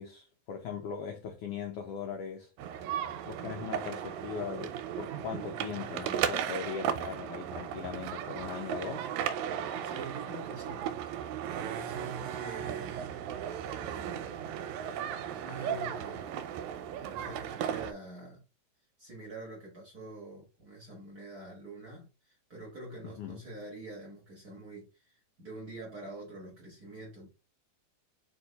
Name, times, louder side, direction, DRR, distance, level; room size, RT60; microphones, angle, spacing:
voice 1, 0.0-2.5 3.2-9.1 12.2-12.3 23.0-23.4, left 7 dB, 85° left, 1.3 m, -40 dB
sound 1, 2.6-17.9, right 9 dB, 80° right, 1.8 m, -36 dB
voice 2, 9.8-11.0 11.5-13.4 13.7-14.6 15.4-16.5 16.9-18.4 19.0-27.3, right 2 dB, 45° right, 1.3 m, -46 dB
4.4 x 2.8 x 3.9 m
omnidirectional pair, 3.4 m